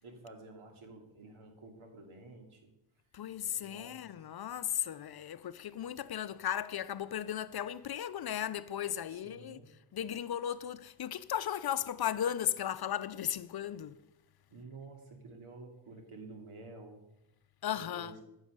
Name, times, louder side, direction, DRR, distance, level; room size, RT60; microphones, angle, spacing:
voice 1, 0.0-2.7 3.6-4.1 9.1-9.7 14.5-17.0 17.7-18.2, right 3 dB, 75° right, 2.8 m, -51 dB
voice 2, 3.1-9.6 9.9-14.0 17.6-18.1, left 10 dB, 50° left, 0.6 m, -36 dB
14.0 x 6.5 x 6.7 m
cardioid pair, 95°, 49 cm